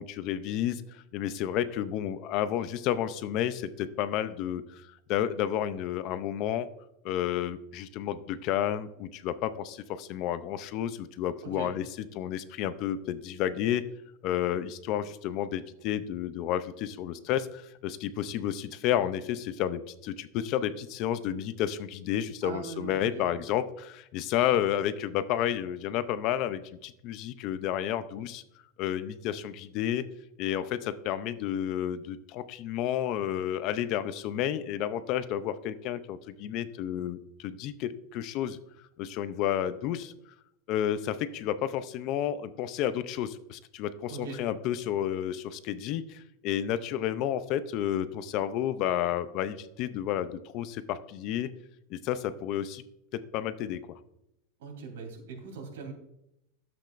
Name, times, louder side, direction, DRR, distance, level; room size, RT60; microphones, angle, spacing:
voice 1, 0.0-6.7 7.0-11.9 12.1-13.8 14.2-28.4 28.8-30.0 30.4-38.6 39.0-40.1 40.7-51.5 51.9-52.8 53.1-53.8, left 11 dB, 35° left, 13 dB, 0.5 m, -31 dB
voice 2, 22.4-23.2 44.1-44.4 54.6-55.9, right 5 dB, 90° right, 2 dB, 3.2 m, -40 dB
12.0 x 7.7 x 2.5 m, 0.81 s
supercardioid pair, 170°, 0 cm